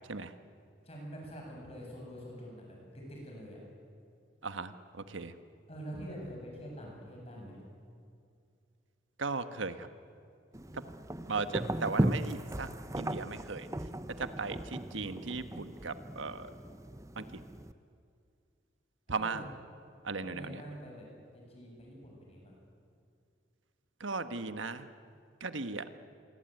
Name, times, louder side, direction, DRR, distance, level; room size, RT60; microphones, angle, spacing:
voice 1, 0.8-2.8 3.1-3.6 5.7-7.6 19.1-19.5 20.2-21.1 21.3-22.5, equal, 30° left, -1 dB, 7.9 m, -45 dB
voice 2, 4.4-5.3 9.2-9.9 10.7-10.8 11.3-12.7 13.0-13.7 14.2-16.5 17.2-17.3 19.1-19.5 20.0-20.6 24.0-24.9 25.4-25.8, right 4 dB, 85° right, 11 dB, 1.4 m, -37 dB
sound 1, 10.5-17.7, right 1 dB, 15° right, 0.7 m, -37 dB
26.5 x 23.0 x 9.3 m, 2.4 s
head